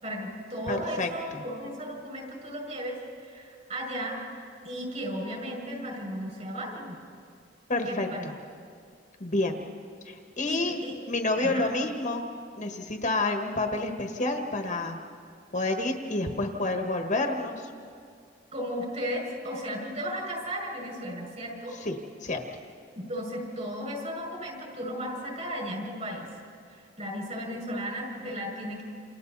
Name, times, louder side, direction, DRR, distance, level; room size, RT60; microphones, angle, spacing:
voice 1, 0.0-4.2 4.6-7.0 7.9-8.3 10.5-11.0 11.4-11.7 18.5-21.7 23.0-26.3 26.8-28.8, equal, 40° right, -1 dB, 6.1 m, -35 dB
voice 2, 0.7-1.4 7.7-8.3 9.2-9.6 10.0-10.8 11.1-12.2 12.6-15.0 15.5-17.7 21.8-22.0 22.2-22.4, left 2 dB, 40° left, 4 dB, 1.5 m, -29 dB
29.0 x 28.5 x 4.1 m, 2.3 s
head